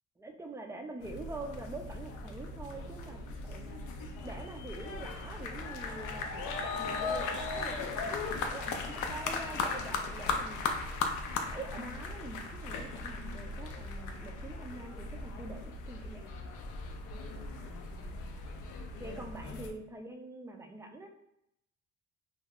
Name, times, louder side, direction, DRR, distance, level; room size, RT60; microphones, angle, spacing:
voice 1, 0.2-3.8 4.2-10.6 11.4-16.3 19.0-21.1, right 2 dB, 10° right, 4 dB, 0.3 m, -45 dB
sound 1, 1.0-19.7, left 4 dB, 80° left, 0.4 m, -38 dB
2.2 x 2.1 x 3.5 m, 0.79 s
cardioid pair, 90°, 30 cm